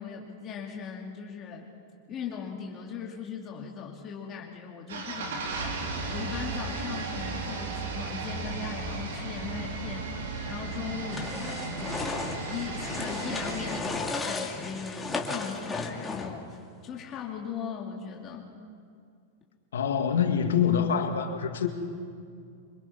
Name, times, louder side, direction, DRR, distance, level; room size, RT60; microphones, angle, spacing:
voice 1, 0.0-1.7 2.1-10.0 10.4-18.5, left 6 dB, 35° left, -1 dB, 2.5 m, -39 dB
sound 1, 4.9-13.8, right 3 dB, 80° right, 3.9 m, -35 dB
sound 2, 11.1-16.5, left 3 dB, 15° left, 2.3 m, -34 dB
voice 2, 19.7-21.7, left 7 dB, 90° left, 4 dB, 2.3 m, -25 dB
25.5 x 23.0 x 5.8 m, 2.3 s
hypercardioid pair, 125°, 0 cm